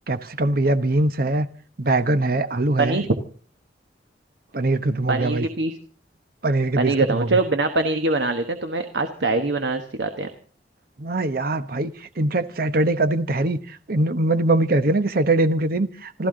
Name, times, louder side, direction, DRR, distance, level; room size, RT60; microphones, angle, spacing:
voice 1, 0.1-1.5 1.8-3.0 4.5-5.5 6.4-7.3 11.0-16.3, right 2 dB, 55° right, 1.0 m, -22 dB
voice 2, 2.8-3.1 5.1-5.7 6.8-10.3, right 3 dB, 85° right, 1.2 m, -23 dB
27.0 x 13.5 x 3.8 m
head